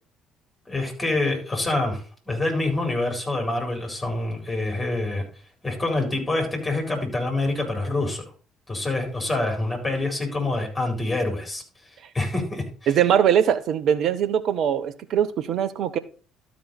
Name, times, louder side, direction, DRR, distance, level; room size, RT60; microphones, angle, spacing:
voice 1, 0.7-5.2 5.6-8.2 8.7-11.6 12.1-12.9, left 2 dB, 15° left, 4.0 m, -26 dB
voice 2, 12.9-16.0, right 9 dB, 50° right, 0.7 m, -21 dB
12.5 x 5.1 x 4.2 m
figure-of-eight pair, 50°, 0 cm